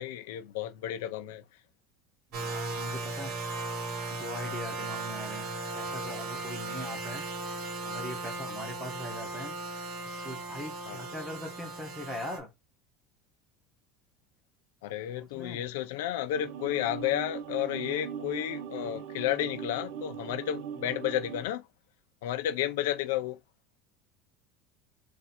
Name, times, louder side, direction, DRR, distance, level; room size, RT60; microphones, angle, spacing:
voice 1, 0.0-1.4 10.9-11.0 14.8-21.6 22.2-23.4, left 12 dB, 80° left, 0.6 m, -32 dB
voice 2, 2.3-3.4 4.1-7.3 7.8-9.5 10.1-12.5 15.2-15.7, left 1 dB, 5° right, 1.0 m, -41 dB
sound 1, 2.3-12.4, right 3 dB, 45° right, 0.9 m, -37 dB
sound 2, 16.3-21.4, right 8 dB, 70° right, 0.7 m, -40 dB
2.7 x 2.5 x 4.2 m
cardioid pair, 175°, 0 cm